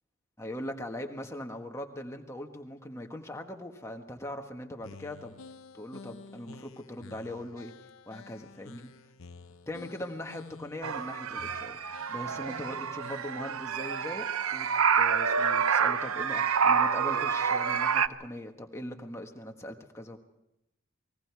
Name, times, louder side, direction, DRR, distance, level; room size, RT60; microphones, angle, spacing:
voice 1, 0.4-5.4 5.7-7.7 8.1-8.9 9.7-11.8 12.1-14.3 14.5-14.7 15.0-20.2, left 1 dB, 15° left, 3 dB, 1.5 m, -40 dB
sound 1, 4.8-13.6, left 4 dB, 75° left, 0.9 m, -50 dB
sound 2, 10.8-18.1, right 6 dB, 85° right, 0.7 m, -28 dB
29.0 x 20.5 x 4.7 m, 0.87 s
head